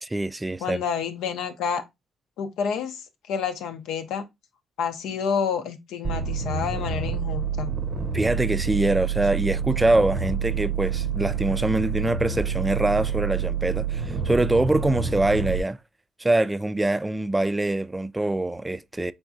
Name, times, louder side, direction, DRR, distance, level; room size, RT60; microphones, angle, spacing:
voice 1, 0.0-0.8 8.1-15.8 16.2-19.1, right 2 dB, 15° right, 0.3 m, -24 dB
voice 2, 0.6-1.8 2.4-3.0 3.3-4.2 4.8-7.7, left 7 dB, 85° left, 0.7 m, -29 dB
sound 1, 6.0-15.6, right 7 dB, 55° right, 0.6 m, -28 dB
4.7 x 3.6 x 2.6 m
cardioid pair, 90°, 0 cm